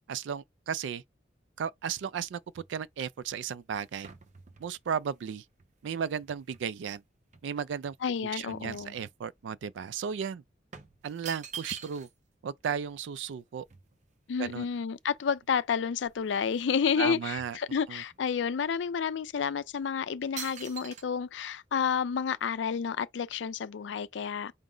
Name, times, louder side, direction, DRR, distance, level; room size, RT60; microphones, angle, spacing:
voice 1, 0.1-1.0 1.6-4.1 4.6-5.4 5.8-7.0 7.4-8.0 8.3-10.4 11.0-12.1 12.4-13.7 14.4-14.7 17.0-17.6 17.9-18.0, right 7 dB, 80° right, 0.3 m, -35 dB
sound 1, 1.8-6.9 7.3-9.5 9.8-10.0 10.7-12.3 12.6-12.7 12.9-15.0 15.6-15.7 15.9-16.7 17.0-18.2 18.8-18.9 19.6-19.8 20.4-21.0, right 7 dB, 40° right, 0.6 m, -46 dB
voice 2, 8.0-8.9 14.3-24.5, left 6 dB, 75° left, 0.4 m, -30 dB
4.8 x 2.0 x 3.8 m
head